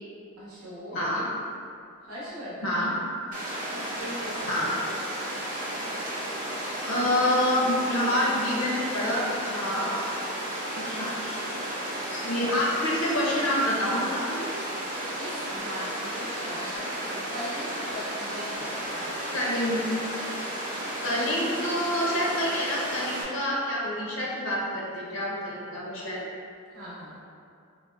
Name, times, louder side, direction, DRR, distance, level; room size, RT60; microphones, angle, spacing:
voice 1, 0.4-1.0 2.0-2.8 3.7-4.6 15.2-19.4 26.7-27.2, equal, 90° right, -8 dB, 0.8 m, -40 dB
voice 2, 0.9-1.3 2.6-2.9 4.5-4.8 6.8-10.0 10.7-11.7 12.1-14.5 19.3-19.8 21.0-26.2, left 1 dB, 65° left, -5 dB, 0.5 m, -27 dB
Water, 3.3-23.2, right 1 dB, 35° right, 0.6 m, -33 dB
4.0 x 2.0 x 2.2 m, 2.4 s
head